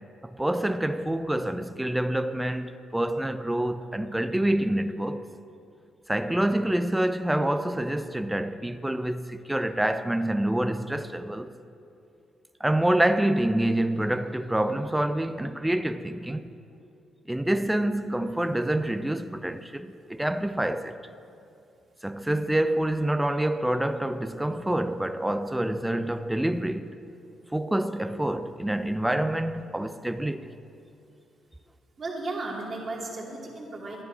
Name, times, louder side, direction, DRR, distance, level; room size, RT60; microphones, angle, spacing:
voice 1, 0.2-5.2 6.1-11.5 12.6-16.4 17.3-21.0 22.0-26.9 27.5-30.4, right 1 dB, 5° right, 0.5 m, -27 dB
voice 2, 32.0-34.0, right 2 dB, 40° right, 2.3 m, -35 dB
12.0 x 10.0 x 4.2 m
cardioid pair, 90°, 0 cm